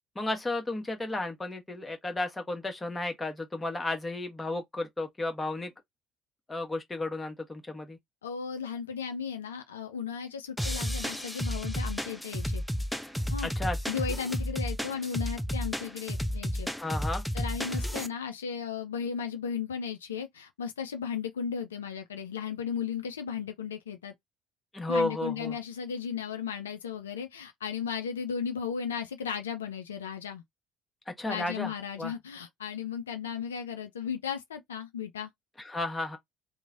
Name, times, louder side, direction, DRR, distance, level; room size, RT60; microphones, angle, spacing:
voice 1, 0.1-5.7 6.5-8.0 13.4-13.8 16.7-17.2 24.7-25.6 31.1-32.1 35.6-36.2, left 2 dB, 20° left, 1.0 m, -33 dB
voice 2, 8.2-12.6 13.3-13.5 13.9-16.7 17.3-24.1 24.9-30.4 31.3-35.3, left 7 dB, 80° left, 0.3 m, -35 dB
sound 1, 10.6-18.1, equal, ahead, 0.5 m, -32 dB
3.0 x 2.1 x 2.4 m
figure-of-eight pair, 55°, 0 cm